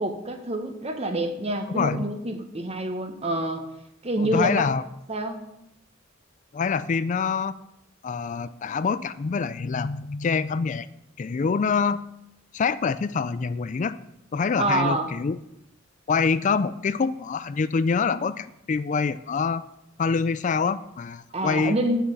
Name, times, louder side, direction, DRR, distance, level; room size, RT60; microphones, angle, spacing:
voice 1, 0.0-3.6 4.0-4.6 5.1-5.4 14.6-15.1 21.3-22.0, right 1 dB, 30° right, 6 dB, 1.3 m, -27 dB
voice 2, 1.7-2.1 4.2-4.8 6.5-7.5 8.0-10.9 11.2-12.1 12.5-14.0 14.3-15.4 16.1-19.6 20.0-21.8, left 5 dB, 40° left, 14 dB, 0.4 m, -25 dB
9.3 x 7.2 x 7.6 m, 0.83 s
head